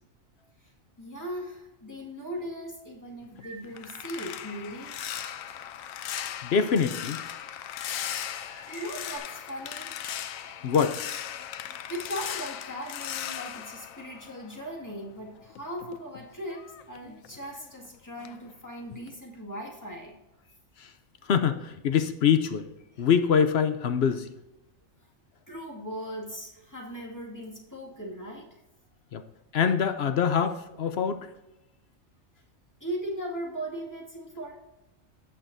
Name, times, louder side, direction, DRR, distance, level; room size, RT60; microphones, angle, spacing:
voice 1, 1.0-5.0 8.7-9.9 11.9-20.2 25.5-28.6 32.8-34.5, equal, 15° left, -2 dB, 2.1 m, -38 dB
sound 1, 3.2-14.9 15.2-17.9 18.2-18.5 18.9-19.1, left 10 dB, 85° left, 1.0 m, -38 dB
sound 2, 3.4-5.3 5.6-5.7 6.2-7.1 7.7-9.2, right 1 dB, 40° right, 3.4 m, -52 dB
voice 2, 6.4-7.2 10.6-11.0 20.8-20.9 21.3-22.7 23.0-24.3 29.1-29.2 29.5-31.2, left 7 dB, 60° left, 9 dB, 0.8 m, -24 dB
17.0 x 6.7 x 2.7 m, 0.92 s
omnidirectional pair, 1.4 m